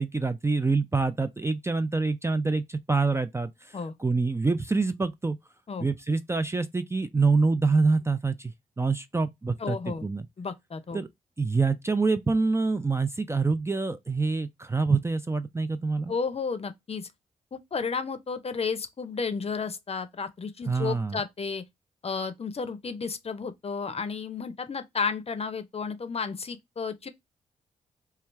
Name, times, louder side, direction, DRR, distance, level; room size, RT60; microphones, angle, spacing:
voice 1, 0.0-5.4 5.8-10.3 10.9-11.1 11.4-16.1 20.7-21.2, right 4 dB, 15° right, 0.4 m, -26 dB
voice 2, 9.6-10.1 10.4-11.0 16.1-17.1 17.5-21.6 22.0-27.1, left 5 dB, 40° left, 0.6 m, -32 dB
3.2 x 2.3 x 3.1 m
hypercardioid pair, 40°, 17 cm